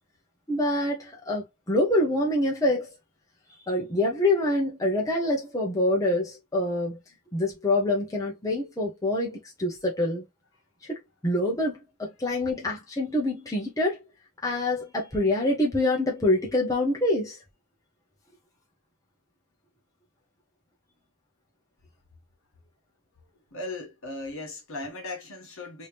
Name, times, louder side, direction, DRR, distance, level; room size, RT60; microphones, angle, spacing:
voice 1, 0.5-2.9 3.7-7.0 7.3-10.2 10.8-14.0 14.4-17.4, left 1 dB, 15° left, 0.9 m, -26 dB
voice 2, 23.5-25.9, left 2 dB, 65° left, 1.8 m, -37 dB
3.6 x 2.8 x 3.3 m
head